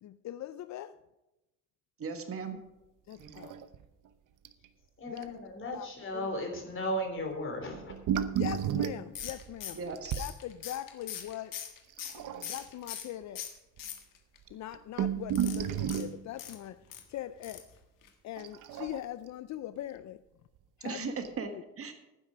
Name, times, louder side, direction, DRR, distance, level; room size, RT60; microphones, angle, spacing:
voice 1, 0.0-1.0 3.1-3.5 5.1-5.3 5.7-6.3 8.3-9.8 10.2-11.6 12.4-13.6 14.5-16.8 17.1-17.6 18.2-20.2 20.8-21.1 21.5-21.6, left 12 dB, 60° left, 13 dB, 0.5 m, -41 dB
voice 2, 2.0-2.6 3.2-3.3 9.7-10.1 20.8-21.5 21.8-21.9, right 5 dB, 45° right, 6 dB, 1.5 m, -37 dB
sound 1, 3.2-4.1 4.4-4.7 5.2-5.3 7.7-10.3 12.0-12.7 13.5-13.6 13.8-13.9 14.5-16.2 18.4-19.3 20.6-20.7 21.2-21.3, right 9 dB, 70° right, 0.8 m, -33 dB
voice 3, 5.0-7.9, equal, 40° left, 4 dB, 3.2 m, -35 dB
sound 2, 9.2-13.1 13.4-14.4 15.3-17.0 17.4-17.7 18.0-18.1 18.4-18.5, left 9 dB, 80° left, 1.7 m, -42 dB
11.5 x 9.9 x 5.1 m, 0.96 s
cardioid pair, 160°, 32 cm